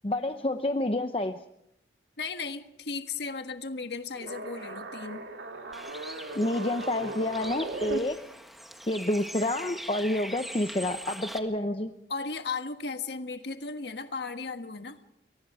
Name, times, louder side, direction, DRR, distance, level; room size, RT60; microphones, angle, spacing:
voice 1, 0.0-1.4 6.3-8.2 8.9-11.9, left 1 dB, 30° left, 7 dB, 0.8 m, -29 dB
voice 2, 2.2-5.3 12.1-15.0, left 4 dB, 70° left, 7 dB, 1.5 m, -36 dB
sound 1, 4.1-8.0, right 2 dB, 85° right, 2.5 m, -38 dB
Bird, 5.7-11.4, equal, ahead, 1.6 m, -42 dB
29.5 x 23.0 x 4.9 m, 0.80 s
head